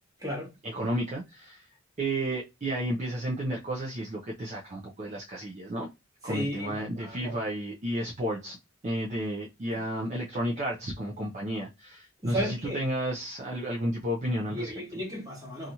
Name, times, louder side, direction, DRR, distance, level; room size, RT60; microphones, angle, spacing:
voice 1, 0.6-1.7 2.0-5.9 6.2-8.6 8.8-14.7, right 1 dB, 35° right, 0.5 m, -32 dB
voice 2, 6.3-7.3 12.2-12.8 14.5-15.7, equal, 20° right, 1.1 m, -34 dB
2.8 x 2.4 x 2.6 m
head